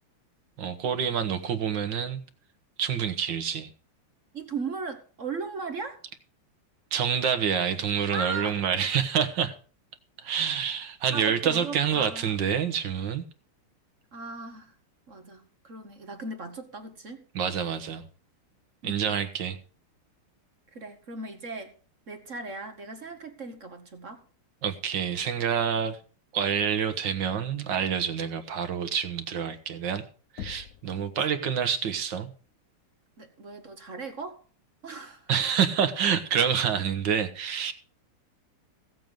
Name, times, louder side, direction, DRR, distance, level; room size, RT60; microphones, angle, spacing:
voice 1, 0.6-2.2 2.8-3.7 6.9-9.5 10.2-13.2 17.4-18.0 18.8-19.6 24.6-26.0 26.3-30.0 30.3-32.3 35.3-37.7, right 7 dB, 60° right, 1.7 m, -27 dB
voice 2, 4.3-6.0 8.1-8.6 11.1-12.4 14.1-14.7 15.1-17.2 18.8-19.1 20.7-21.7 22.1-24.2 30.9-31.1 33.2-34.4 34.8-35.3, right 4 dB, 40° right, 1.2 m, -37 dB
Knock, 30.4-31.0, left 9 dB, 60° left, 0.9 m, -41 dB
16.5 x 7.8 x 5.2 m
omnidirectional pair, 2.4 m